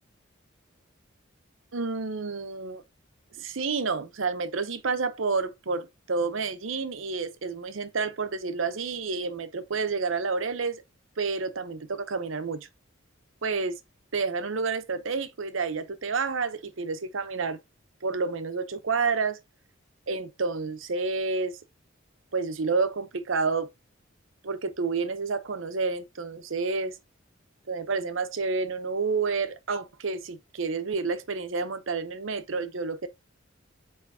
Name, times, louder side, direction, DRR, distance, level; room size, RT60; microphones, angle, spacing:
voice 1, 1.7-2.8 3.4-10.8 11.2-12.7 13.4-13.8 14.1-17.6 18.0-19.4 20.1-21.6 22.3-23.7 24.4-27.0 27.7-33.1, right 4 dB, 75° right, 0.8 m, -29 dB
8.2 x 4.6 x 2.8 m
head